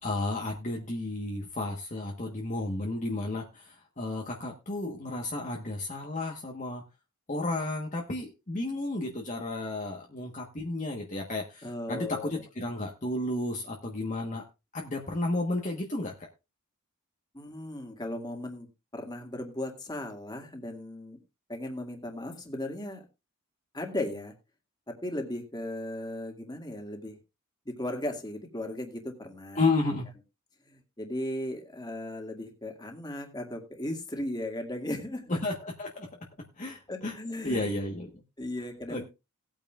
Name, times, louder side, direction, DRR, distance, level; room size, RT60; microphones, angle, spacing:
voice 1, 0.0-6.8 7.3-14.4 14.7-16.3 29.6-30.1 35.4-36.1 36.6-37.1 37.4-38.1 38.9-39.0, left 2 dB, 35° left, 0 dB, 1.3 m, -32 dB
voice 2, 11.6-12.3 17.3-21.2 21.5-23.0 23.7-24.3 24.9-27.2 27.7-29.7 30.7-35.4 36.9-37.7 38.4-39.1, left 1 dB, 20° left, 3 dB, 2.1 m, -36 dB
18.5 x 9.0 x 2.4 m, 0.26 s
head